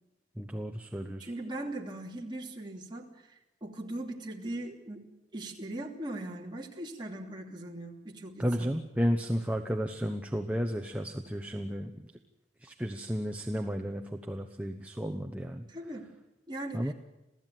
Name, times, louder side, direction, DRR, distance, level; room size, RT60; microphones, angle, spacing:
voice 1, 0.4-1.3 8.4-12.1 12.6-15.7 16.7-16.9, equal, 10° right, 4 dB, 1.0 m, -33 dB
voice 2, 1.2-8.7 15.7-16.1 16.5-16.9, right 1 dB, 25° right, 0 dB, 3.0 m, -40 dB
28.0 x 16.5 x 9.2 m, 0.98 s
head